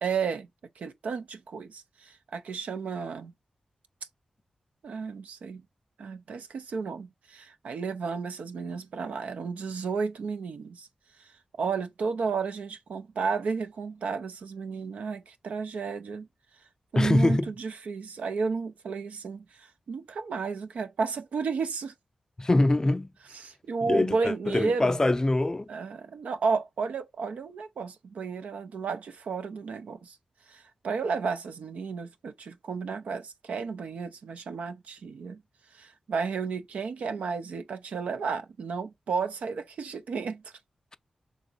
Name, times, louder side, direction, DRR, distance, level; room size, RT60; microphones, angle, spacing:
voice 1, 0.0-0.5 0.8-3.3 4.8-5.6 6.0-10.9 11.2-11.3 11.6-16.3 16.9-21.9 23.3-25.0 25.7-30.2 30.5-35.4 35.7-40.5, right 5 dB, 85° right, 0.5 m, -33 dB
voice 2, 17.0-17.5 22.4-23.1 23.9-25.7, left 2 dB, 25° left, 0.4 m, -24 dB
3.5 x 3.0 x 3.9 m
cardioid pair, 55°, 2 cm